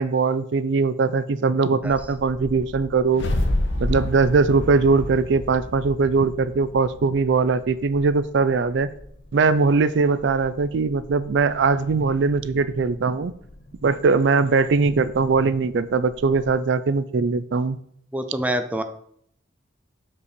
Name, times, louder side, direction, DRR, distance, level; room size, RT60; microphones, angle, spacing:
voice 1, 0.0-3.3 3.8-8.9 9.3-13.3 13.8-17.8, right 4 dB, 65° right, 15 dB, 0.4 m, -21 dB
sound 1, 1.8-16.5, left 1 dB, 40° left, 0.8 m, -44 dB
sound 2, 3.0-7.4, left 1 dB, 65° left, 1.1 m, -28 dB
voice 2, 18.1-18.8, right 1 dB, 5° right, 7 dB, 0.5 m, -25 dB
6.8 x 5.3 x 4.1 m, 0.67 s
head